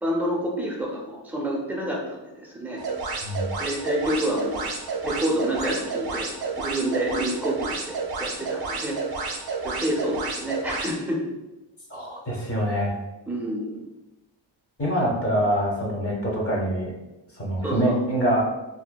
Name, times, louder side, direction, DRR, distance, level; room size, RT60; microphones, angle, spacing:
voice 1, 0.0-2.8 3.6-4.7 5.0-6.3 6.6-9.0 9.6-11.2 13.3-13.8 17.6-18.0, right 1 dB, 5° right, -3 dB, 0.5 m, -28 dB
sound 1, 2.8-10.9, right 4 dB, 55° right, 0.5 m, -31 dB
voice 2, 11.9-12.9 14.8-16.9 17.4-18.4, equal, 30° left, -4 dB, 0.7 m, -25 dB
2.6 x 2.1 x 2.2 m, 1.0 s
wide cardioid pair, 95°, 46 cm